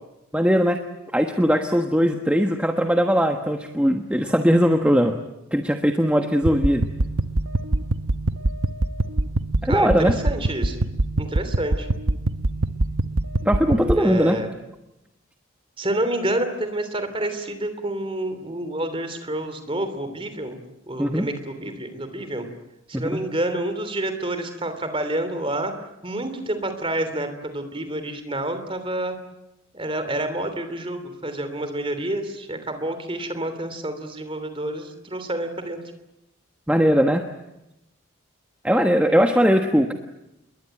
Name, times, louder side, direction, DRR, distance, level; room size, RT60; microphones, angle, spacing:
voice 1, 0.3-0.8 1.1-5.2 5.5-6.8 9.6-10.2 13.4-14.4 21.0-21.3 22.9-23.2 36.7-37.2 38.6-39.9, equal, 5° right, 5 dB, 1.2 m, -20 dB
sound 1, 6.4-14.0, right 2 dB, 75° right, 1.1 m, -24 dB
voice 2, 9.6-10.8 11.2-11.9 13.9-14.5 15.8-20.6 20.9-22.5 22.9-25.7 26.0-29.1 29.7-35.8, right 1 dB, 25° right, 9 dB, 3.1 m, -28 dB
28.5 x 22.0 x 9.0 m, 0.91 s
head